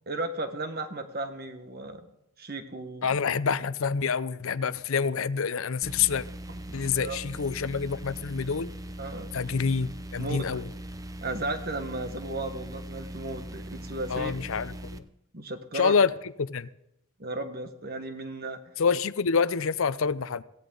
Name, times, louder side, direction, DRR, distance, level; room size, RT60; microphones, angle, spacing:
voice 1, 0.1-2.1 2.4-3.1 6.6-7.2 9.0-9.3 10.2-10.4 11.2-14.4 15.3-15.9 17.2-18.6, right 2 dB, 45° right, 1.4 m, -35 dB
voice 2, 3.0-6.2 6.7-8.7 9.3-10.6 14.1-15.0 15.7-16.1 16.5-16.7 18.8-20.4, left 6 dB, 70° left, 0.6 m, -27 dB
sound 1, 5.8-15.0, right 1 dB, 15° right, 0.6 m, -40 dB
16.0 x 16.0 x 3.9 m
head